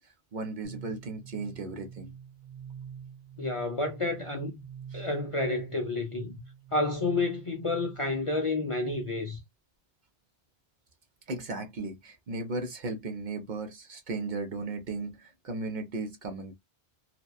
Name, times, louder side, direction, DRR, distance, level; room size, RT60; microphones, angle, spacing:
voice 1, 0.0-2.1 4.9-5.1 11.3-16.5, right 3 dB, 55° right, 0.6 m, -36 dB
sound 1, 0.6-8.2, right 7 dB, 90° right, 1.1 m, -46 dB
voice 2, 3.4-4.6 4.9-6.4 6.7-9.4, left 2 dB, 45° left, 0.4 m, -30 dB
2.8 x 2.1 x 2.2 m
omnidirectional pair, 1.1 m